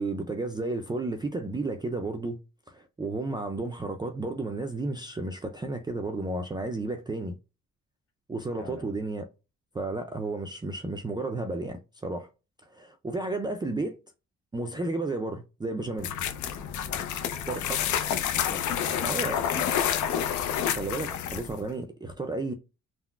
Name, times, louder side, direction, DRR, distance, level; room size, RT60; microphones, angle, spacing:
voice 1, 0.0-2.4 2.7-7.3 8.3-9.3 9.7-12.3 12.7-14.0 14.5-16.1 17.5-17.8 19.0-19.4 20.7-22.5, right 2 dB, 15° right, 0.4 m, -32 dB
voice 2, 8.5-8.9 16.8-19.7, left 4 dB, 50° left, 1.7 m, -45 dB
sound 1, 16.0-21.6, left 9 dB, 75° left, 0.5 m, -29 dB
3.7 x 2.0 x 2.2 m
cardioid pair, 90°, 30 cm